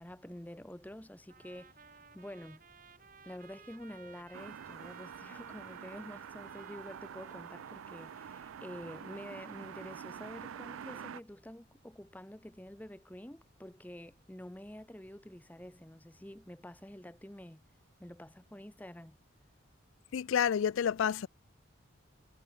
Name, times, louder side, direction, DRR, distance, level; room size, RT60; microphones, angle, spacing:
voice 1, 0.0-2.6 3.2-17.6 18.0-19.2, left 1 dB, 10° left, 0.8 m, -48 dB
Trumpet, 1.3-10.4, right 5 dB, 40° right, 2.5 m, -58 dB
sound 1, 4.3-11.2, right 8 dB, 80° right, 0.4 m, -47 dB
voice 2, 20.1-21.3, left 8 dB, 75° left, 0.4 m, -29 dB
head